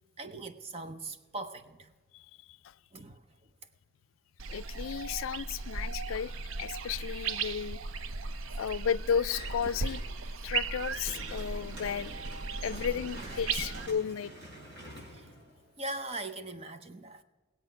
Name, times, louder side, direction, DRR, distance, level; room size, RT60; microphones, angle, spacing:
voice 1, 0.2-1.9 2.9-3.2 13.6-13.7 15.1-15.2 15.8-17.2, right 2 dB, 30° right, 0.7 m, -40 dB
sound 1, 4.4-13.9, right 4 dB, 75° right, 0.6 m, -37 dB
voice 2, 4.5-6.3 6.6-7.8 8.5-10.0 10.4-12.1 12.6-14.3, left 7 dB, 80° left, 0.3 m, -33 dB
sound 2, 9.2-10.3 10.6-16.0, right 1 dB, 60° right, 5.1 m, -47 dB
18.0 x 8.3 x 5.7 m
head